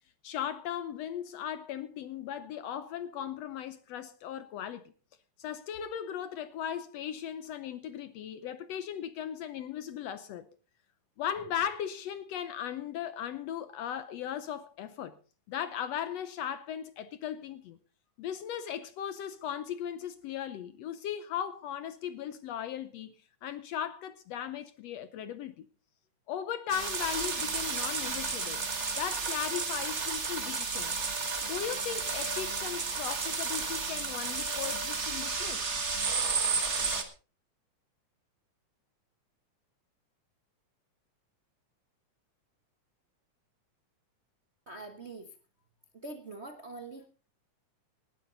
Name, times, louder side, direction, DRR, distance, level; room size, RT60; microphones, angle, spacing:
voice 1, 0.2-4.9 5.4-10.5 11.2-15.2 15.5-17.8 18.2-23.2 23.4-25.7 26.3-28.6 29.0-30.9 31.4-35.7, left 9 dB, 70° left, 1.7 m, -37 dB
sound 1, 26.7-37.0, right 4 dB, 35° right, 1.2 m, -32 dB
voice 2, 44.7-45.3 46.0-47.1, right 2 dB, 55° right, 0.7 m, -43 dB
19.0 x 11.5 x 4.0 m
omnidirectional pair, 3.4 m